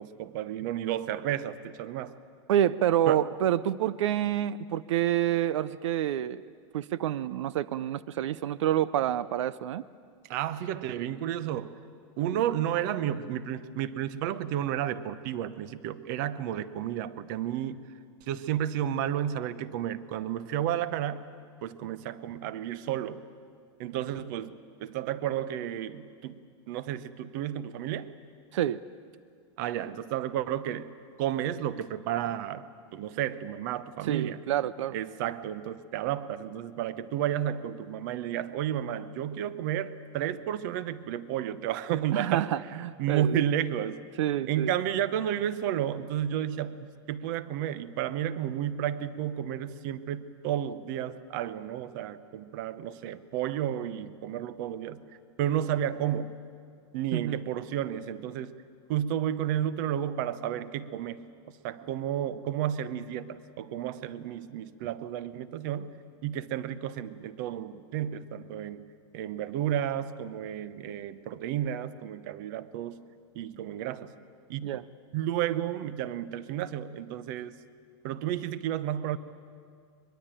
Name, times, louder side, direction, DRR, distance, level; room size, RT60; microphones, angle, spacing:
voice 1, 0.0-2.1 3.1-3.3 10.3-11.8 12.2-17.8 18.2-21.2 21.6-23.2 23.8-24.5 24.8-26.4 26.7-28.1 29.6-30.9 31.2-32.7 32.9-34.4 34.9-42.5 43.0-44.0 44.5-55.0 55.4-56.4 56.9-58.5 58.9-65.9 66.2-68.9 69.1-73.0 73.3-74.1 74.5-74.7 75.1-77.6 78.0-79.2, right 10 dB, 40° right, 15 dB, 0.8 m, -32 dB
voice 2, 2.5-6.4 6.7-9.8 28.5-28.8 34.0-35.0 42.1-43.4 44.2-44.7 57.1-57.4 74.6-74.8, right 11 dB, 85° right, 18 dB, 0.6 m, -28 dB
22.5 x 22.0 x 9.0 m, 2.2 s
supercardioid pair, 175°, 15 cm